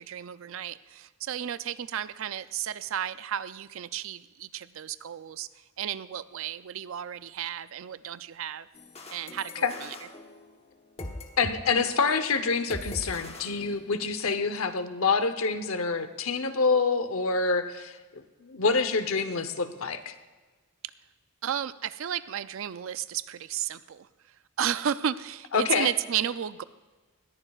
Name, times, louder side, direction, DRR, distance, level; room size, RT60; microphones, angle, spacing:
voice 1, 0.0-5.5 5.8-8.7 9.1-9.9 21.4-24.1 24.6-26.6, right 9 dB, 65° right, 15 dB, 0.4 m, -33 dB
sound 1, 8.7-11.6 11.8-12.1 12.7-14.2, left 2 dB, 30° left, 1.0 m, -42 dB
voice 2, 11.4-20.1 25.5-25.9, left 4 dB, 70° left, 10 dB, 0.9 m, -27 dB
20.0 x 14.0 x 2.4 m, 1.3 s
head